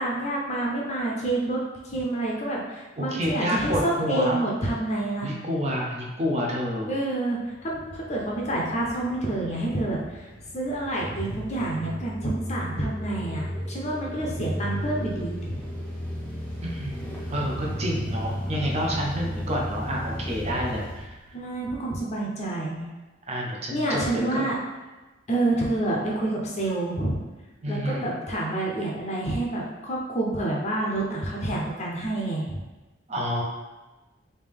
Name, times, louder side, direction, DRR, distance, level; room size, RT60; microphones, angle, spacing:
voice 1, 0.0-5.4 6.9-10.3 10.5-15.6 21.3-22.9 23.7-24.6 25.3-27.2 27.7-32.6, right 2 dB, 35° left, -3 dB, 0.6 m, -28 dB
voice 2, 3.0-4.4 5.2-6.9 16.6-21.1 23.3-24.4 27.6-28.1 33.1-33.4, equal, 35° right, -2 dB, 0.6 m, -29 dB
sound 1, 7.5-21.8, equal, 10° left, 0.8 m, -34 dB
3.3 x 2.7 x 3.5 m, 1.2 s
head